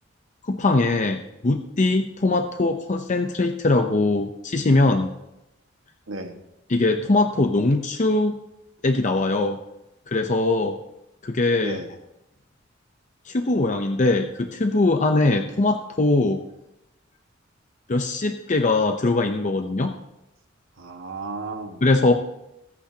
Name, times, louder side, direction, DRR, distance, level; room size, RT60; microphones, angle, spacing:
voice 1, 0.4-5.1 6.7-8.4 8.8-9.6 10.1-10.8 11.2-11.8 13.3-16.4 17.9-19.9 21.8-22.1, left 2 dB, 40° left, 5 dB, 0.6 m, -21 dB
voice 2, 6.1-6.4 11.6-11.9 15.2-15.4 20.8-21.8, right 3 dB, 90° right, 4 dB, 1.6 m, -34 dB
24.5 x 8.4 x 2.8 m, 0.88 s
head